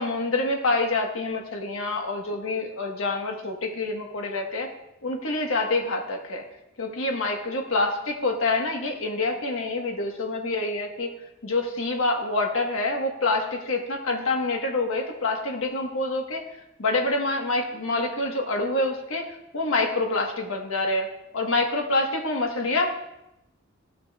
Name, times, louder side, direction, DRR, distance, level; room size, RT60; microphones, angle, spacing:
voice 1, 0.0-4.7 5.0-6.4 6.8-11.1 11.4-16.4 16.8-19.3 19.5-21.1 21.3-23.1, left 2 dB, 85° left, 2 dB, 1.4 m, -26 dB
14.0 x 5.9 x 2.4 m, 0.88 s
head